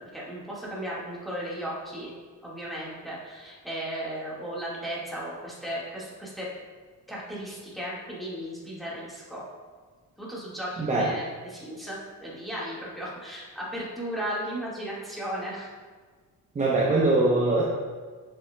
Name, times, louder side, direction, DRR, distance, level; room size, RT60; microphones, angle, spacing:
voice 1, 0.0-2.1 2.4-6.5 7.1-9.4 10.2-15.7, equal, ahead, -7 dB, 1.7 m, -35 dB
voice 2, 10.8-11.1 16.5-17.6, right 2 dB, 20° right, -4 dB, 0.8 m, -22 dB
7.6 x 7.0 x 2.2 m, 1.5 s
cardioid pair, 150°, 34 cm